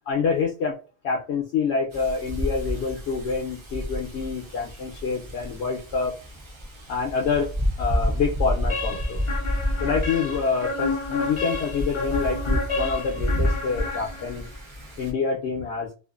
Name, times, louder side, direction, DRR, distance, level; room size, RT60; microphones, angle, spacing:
voice 1, 0.1-0.7 1.0-6.1 6.9-7.5 7.8-9.2 9.8-14.5 15.0-15.9, left 5 dB, 70° left, 0 dB, 0.8 m, -27 dB
Wind, 1.9-15.1, equal, 40° right, 0.4 m, -30 dB
sound 1, 8.7-14.6, left 3 dB, 45° left, 0.4 m, -31 dB
2.5 x 2.4 x 2.3 m, 0.34 s
omnidirectional pair, 1.2 m